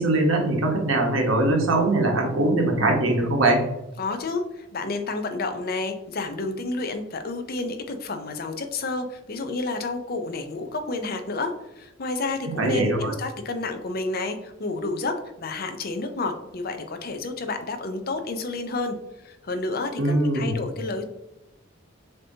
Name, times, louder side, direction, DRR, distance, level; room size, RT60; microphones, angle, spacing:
voice 1, 0.0-3.6 12.5-13.1 20.0-20.5, right 2 dB, 80° right, 1 dB, 1.1 m, -22 dB
voice 2, 4.0-19.0 19.2-21.0, left 3 dB, 45° left, 7 dB, 0.6 m, -30 dB
6.7 x 2.8 x 2.8 m, 0.91 s
head